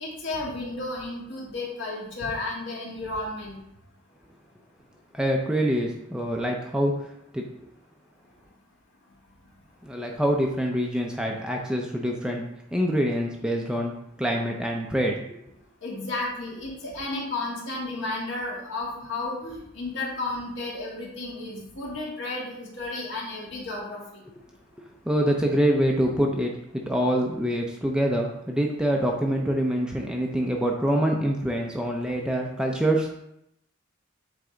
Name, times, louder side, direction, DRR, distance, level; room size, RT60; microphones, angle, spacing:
voice 1, 0.0-3.6 15.8-24.2, left 2 dB, 60° left, -3 dB, 1.9 m, -33 dB
voice 2, 5.1-7.4 9.8-12.5 12.7-13.9 14.2-15.3 25.1-33.1, equal, 5° right, 0 dB, 0.5 m, -25 dB
8.2 x 3.4 x 3.8 m, 0.79 s
head